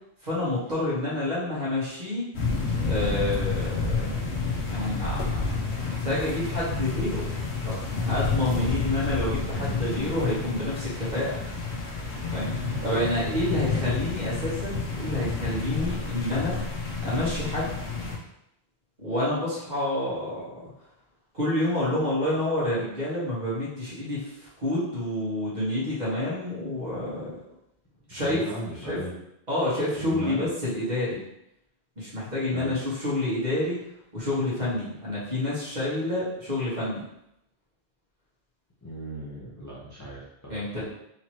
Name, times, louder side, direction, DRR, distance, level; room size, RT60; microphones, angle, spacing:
voice 1, 0.2-2.3 2.8-4.0 4.7-5.4 5.8-7.2 7.6-11.4 12.3-12.5 12.8-16.6 17.0-17.7 19.0-20.7 21.3-27.4 28.1-28.4 28.9-29.0 29.5-31.2 32.0-33.8 34.1-37.0 40.5-40.9, left 1 dB, 40° right, -8 dB, 1.7 m, -28 dB
sound 1, 2.3-18.2, left 4 dB, 85° left, 1.0 m, -30 dB
voice 2, 9.5-10.3 12.6-13.1 13.3-13.9 28.1-29.2 30.0-30.5 32.5-32.8 38.8-40.8, equal, 20° left, -8 dB, 0.8 m, -37 dB
3.8 x 2.9 x 3.0 m, 0.81 s
omnidirectional pair, 1.1 m